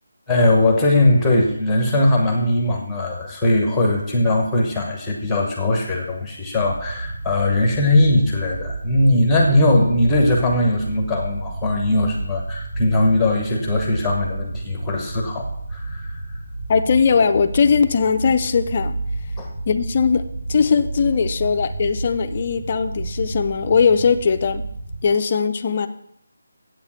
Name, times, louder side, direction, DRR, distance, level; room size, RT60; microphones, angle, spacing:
voice 1, 0.3-15.4 15.7-16.1 19.4-19.5, left 1 dB, ahead, 0 dB, 0.9 m, -19 dB
sound 1, 6.6-25.0, right 2 dB, 45° right, 3.0 m, -31 dB
voice 2, 16.7-19.0 19.7-20.2 20.5-24.6 25.0-25.9, left 5 dB, 20° left, 7 dB, 0.5 m, -19 dB
8.2 x 7.0 x 7.2 m, 0.74 s
figure-of-eight pair, 180°, 0 cm